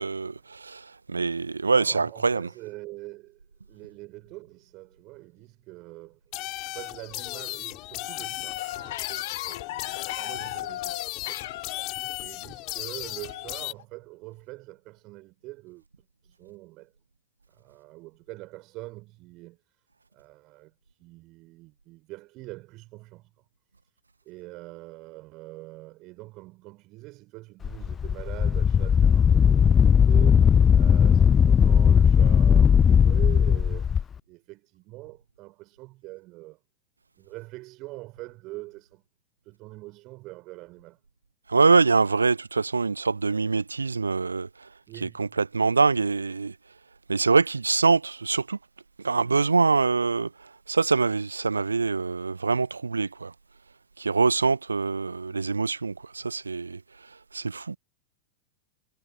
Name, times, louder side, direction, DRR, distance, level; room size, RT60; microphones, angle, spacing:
voice 1, 0.0-2.5 41.5-44.7 45.0-46.5 47.1-48.6 49.0-50.3 50.7-53.3 54.0-56.8 57.3-57.8, right 4 dB, 80° right, 1.4 m, -24 dB
voice 2, 1.5-3.4 3.7-6.4 6.7-11.5 11.8-16.9 17.5-19.8 20.1-23.3 24.2-36.6 37.2-39.0 39.4-41.0 44.9-45.4, right 21 dB, 40° right, 7.8 m, -44 dB
sound 1, 6.3-13.7, left 23 dB, 40° left, 8.0 m, -35 dB
sound 2, 8.5-11.9 13.2-13.5 13.8-13.9, left 14 dB, 55° left, 2.0 m, -37 dB
Wind, 27.6-34.0, left 7 dB, 20° left, 0.5 m, -18 dB
figure-of-eight pair, 90°, 0 cm